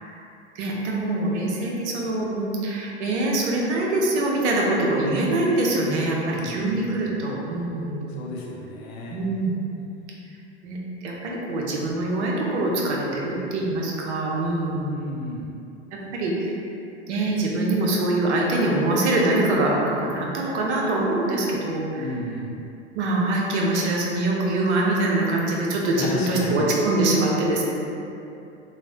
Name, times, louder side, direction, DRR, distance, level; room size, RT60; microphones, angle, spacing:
voice 1, 0.5-8.1 9.1-9.6 10.6-14.9 15.9-16.6 17.1-22.1 22.9-27.7, right 2 dB, 75° right, -2 dB, 0.7 m, -24 dB
voice 2, 6.3-7.1 8.1-9.2 14.9-15.5 22.0-22.6 26.0-26.7, left 1 dB, 65° left, -2 dB, 0.6 m, -33 dB
3.1 x 2.1 x 2.8 m, 2.7 s
hypercardioid pair, 95°, 34 cm